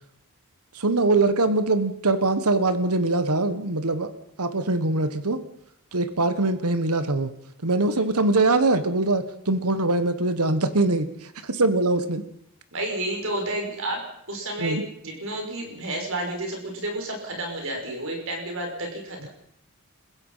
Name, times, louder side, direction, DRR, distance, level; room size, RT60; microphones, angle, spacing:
voice 1, 0.7-4.1 4.4-5.4 5.9-7.3 7.6-12.2 14.6-14.8, right 2 dB, 85° right, 12 dB, 1.4 m, -23 dB
voice 2, 12.7-19.3, right 1 dB, 60° right, 2 dB, 6.2 m, -31 dB
28.5 x 16.0 x 5.7 m, 0.73 s
head